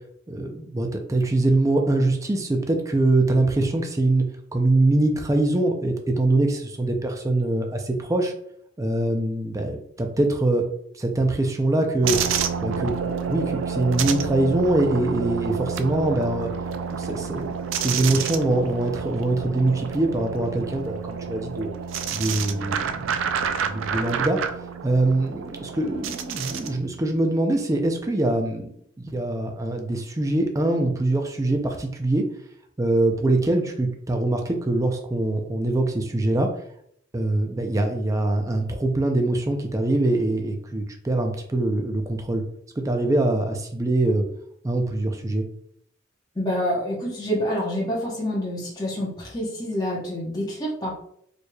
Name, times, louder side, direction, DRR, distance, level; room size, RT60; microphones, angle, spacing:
voice 1, 0.3-4.2 4.5-8.3 8.8-10.6 11.0-12.2 12.6-12.9 13.3-16.5 16.9-21.7 22.1-23.3 23.6-24.4 24.8-28.7 29.0-32.2 32.8-36.5 37.1-42.4 42.8-44.2 44.6-45.4, right 2 dB, 15° right, 4 dB, 0.4 m, -23 dB
sound 1, 12.0-26.8, right 6 dB, 80° right, 0.4 m, -29 dB
voice 2, 46.3-50.9, equal, 20° left, -5 dB, 0.9 m, -27 dB
4.3 x 3.2 x 2.2 m, 0.68 s
head